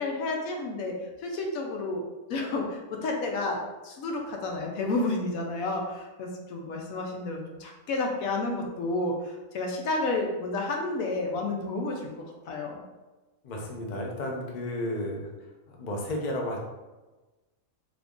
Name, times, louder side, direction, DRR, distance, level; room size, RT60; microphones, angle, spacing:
voice 1, 0.0-2.0 2.3-12.1 12.5-12.8, left 2 dB, 85° left, 1 dB, 1.1 m, -31 dB
voice 2, 13.4-15.3 15.7-16.6, left 1 dB, 50° left, 0 dB, 0.6 m, -32 dB
3.0 x 2.5 x 3.5 m, 1.2 s
omnidirectional pair, 1.4 m